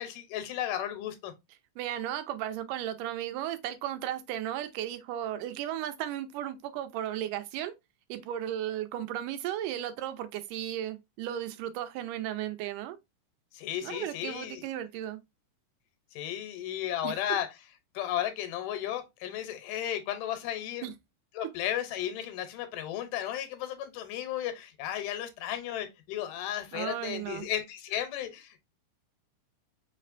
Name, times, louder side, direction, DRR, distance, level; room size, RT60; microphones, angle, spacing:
voice 1, 0.0-1.3 13.5-14.7 16.1-17.5 17.9-20.9 21.3-28.6, left 11 dB, 85° left, 2.4 m, -34 dB
voice 2, 1.8-7.7 8.1-13.0 13.8-15.2 17.0-17.1 20.8-20.9 26.7-27.5, right 11 dB, 85° right, 2.2 m, -35 dB
5.0 x 3.2 x 2.5 m
omnidirectional pair, 3.7 m